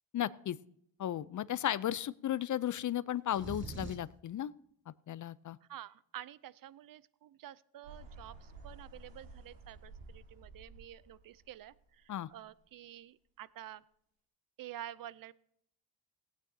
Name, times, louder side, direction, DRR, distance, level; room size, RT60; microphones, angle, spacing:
voice 1, 0.1-0.6 1.0-4.5 4.9-5.6 12.1-12.3, left 11 dB, 45° left, 18 dB, 0.5 m, -35 dB
sound 1, 3.3-4.2, right 3 dB, 25° right, 2.0 m, -43 dB
voice 2, 5.6-13.8 14.6-15.3, right 12 dB, 50° right, 20 dB, 0.6 m, -49 dB
sound 2, 7.8-12.2, right 3 dB, 70° right, 3.3 m, -53 dB
17.0 x 9.2 x 2.8 m, 0.70 s
cardioid pair, 85°, 45 cm